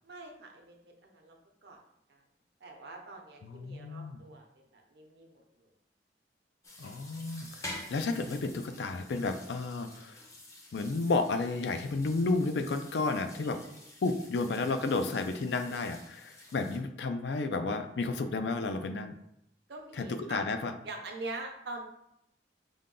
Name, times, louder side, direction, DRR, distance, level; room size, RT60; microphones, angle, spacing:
voice 1, 0.0-0.8 1.0-1.4 1.6-1.8 2.1-2.2 2.6-4.5 4.7-5.7 7.8-8.0 19.7-20.4 20.8-21.8, right 2 dB, 65° right, 2 dB, 0.7 m, -44 dB
voice 2, 3.4-4.2 6.8-10.1 10.7-13.6 14.0-19.1 20.0-20.7, left 3 dB, 70° left, 8 dB, 0.4 m, -32 dB
sound 1, 6.6-16.8, left 1 dB, 15° left, 0.6 m, -49 dB
5.0 x 2.2 x 3.7 m, 0.79 s
head